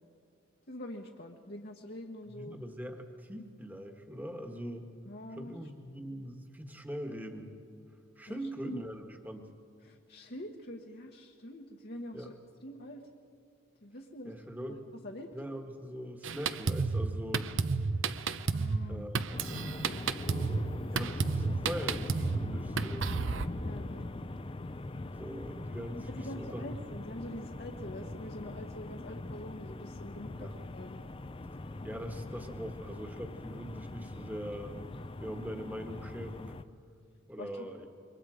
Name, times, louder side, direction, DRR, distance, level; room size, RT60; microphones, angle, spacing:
voice 1, 0.7-2.6 5.0-5.5 8.3-8.8 9.8-12.3 12.6-13.0 13.8-14.3 14.7-14.8 15.0-15.3 18.5-19.1 19.5-19.6 19.9-20.9 23.5-24.1 26.1-31.0 37.4-37.7, left 1 dB, 45° left, 1 dB, 1.1 m, -45 dB
voice 2, 2.3-4.8 5.3-7.5 8.2-9.5 12.1-12.3 14.2-14.8 15.3-17.5 18.8-19.4 20.9-23.1 25.2-26.6 30.3-30.6 31.8-34.8 35.2-36.6 37.3-37.9, equal, 10° right, 4 dB, 1.5 m, -42 dB
Drum kit, 16.2-23.5, right 4 dB, 60° right, 0.7 m, -32 dB
sound 1, 19.3-36.6, left 2 dB, 25° left, 0.5 m, -41 dB
27.5 x 23.5 x 5.0 m, 2.3 s
head